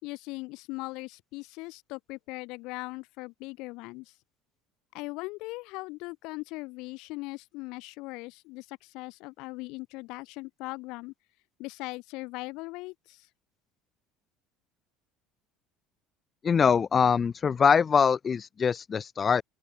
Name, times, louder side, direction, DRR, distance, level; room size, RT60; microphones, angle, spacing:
voice 1, 0.0-4.1 4.9-11.1 11.6-13.3, left 24 dB, 60° left, 3.9 m, -39 dB
voice 2, 16.4-19.4, left 6 dB, 20° left, 0.7 m, -23 dB
open air
cardioid pair, 165°, 0 cm